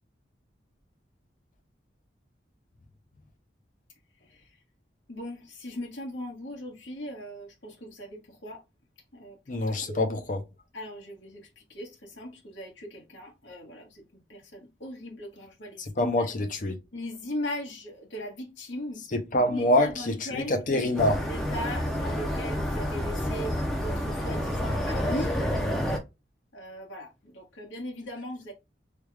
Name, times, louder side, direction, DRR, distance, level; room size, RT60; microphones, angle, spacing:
voice 1, 5.1-8.6 9.1-9.4 9.9-10.0 10.7-11.4 11.7-14.0 14.3-16.3 16.9-19.0 19.5-20.6 21.2-23.5 23.8-25.3 26.5-28.5, left 1 dB, 80° left, 1.5 m, -38 dB
voice 2, 9.5-10.4 16.0-16.7 19.1-21.2, left 1 dB, 45° left, 0.6 m, -25 dB
sound 1, 21.0-26.0, equal, ahead, 0.5 m, -29 dB
3.3 x 2.3 x 3.2 m
head